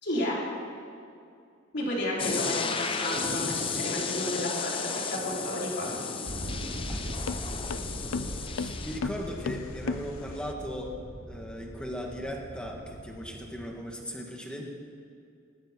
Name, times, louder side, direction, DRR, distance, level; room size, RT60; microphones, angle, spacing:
voice 1, 0.0-0.4 1.7-5.9 7.7-7.8, left 1 dB, 55° left, -4 dB, 4.3 m, -32 dB
sound 1, 2.2-9.0, left 5 dB, 25° left, 0.8 m, -33 dB
voice 2, 2.4-3.2 6.9-10.9 11.3-14.7, equal, 5° left, 0 dB, 1.8 m, -39 dB
sound 2, 5.9-10.5, left 4 dB, 90° left, 0.5 m, -37 dB
sound 3, 6.3-13.7, equal, 55° right, 2.3 m, -40 dB
19.0 x 15.0 x 4.5 m, 2.5 s
head